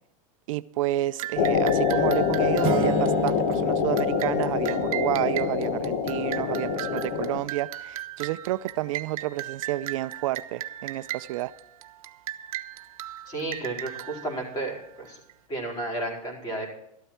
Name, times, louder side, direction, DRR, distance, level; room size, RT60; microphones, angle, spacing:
voice 1, 0.5-11.5, right 15 dB, 70° right, 14 dB, 0.5 m, -30 dB
sound 1, 1.2-15.3, right 13 dB, 90° right, 0.9 m, -38 dB
Tech Background, 1.4-7.4, left 6 dB, 60° left, 1.4 m, -25 dB
sound 2, 2.6-5.4, right 4 dB, 30° right, 1.7 m, -33 dB
voice 2, 13.3-15.2 15.5-16.7, right 2 dB, 20° left, -1 dB, 4.5 m, -32 dB
13.0 x 12.5 x 4.4 m, 0.79 s
supercardioid pair, 155°, 18 cm